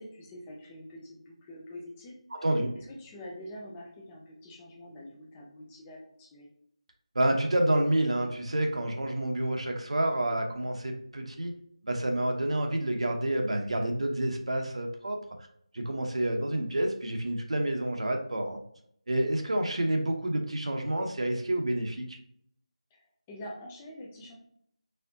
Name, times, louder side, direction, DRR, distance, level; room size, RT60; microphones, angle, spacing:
voice 1, 0.0-2.2 2.8-6.5 22.9-23.0 23.3-24.3, left 1 dB, 5° left, -3 dB, 0.3 m, -45 dB
voice 2, 2.3-2.8 7.1-11.5 11.8-15.2 15.7-18.6 19.1-22.2, right 1 dB, 65° right, 3 dB, 0.8 m, -29 dB
4.3 x 3.3 x 2.6 m, 0.67 s
figure-of-eight pair, 170°, 4 cm